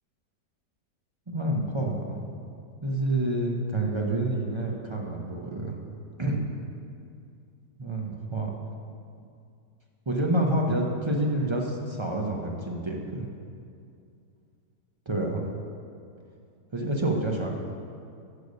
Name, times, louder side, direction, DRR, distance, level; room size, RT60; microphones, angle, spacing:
voice 1, 1.3-2.2 2.8-5.8 6.2-6.5 7.8-8.5 10.1-13.3 15.1-15.5 16.7-17.5, right 1 dB, 35° right, -1 dB, 0.5 m, -28 dB
11.5 x 6.7 x 5.3 m, 2.4 s
omnidirectional pair, 1.9 m